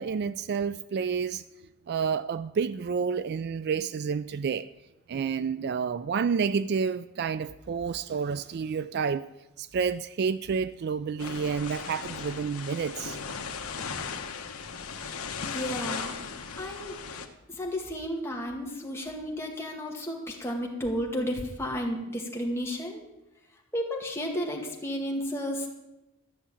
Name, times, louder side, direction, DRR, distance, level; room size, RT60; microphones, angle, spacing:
voice 1, 0.0-1.4 1.9-4.7 5.1-9.2 9.6-13.2, right 6 dB, 50° right, 0.3 m, -29 dB
sound 1, 11.2-17.3, left 5 dB, 80° left, 1.1 m, -37 dB
voice 2, 15.4-17.0 17.5-23.0 23.7-25.7, equal, 10° left, 2.0 m, -33 dB
13.0 x 6.9 x 8.4 m
head